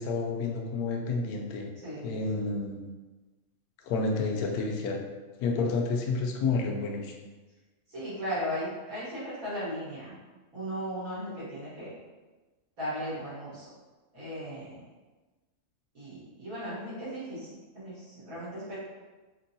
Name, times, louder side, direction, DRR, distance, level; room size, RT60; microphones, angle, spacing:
voice 1, 0.0-1.7 2.0-2.9 3.8-5.0 5.4-7.1, left 3 dB, 90° left, 1 dB, 1.1 m, -30 dB
voice 2, 1.8-2.2 7.9-10.2 10.5-11.9 12.8-13.7 14.1-14.8 15.9-18.8, equal, 70° right, -10 dB, 1.9 m, -37 dB
4.4 x 2.2 x 2.7 m, 1.3 s
omnidirectional pair, 1.5 m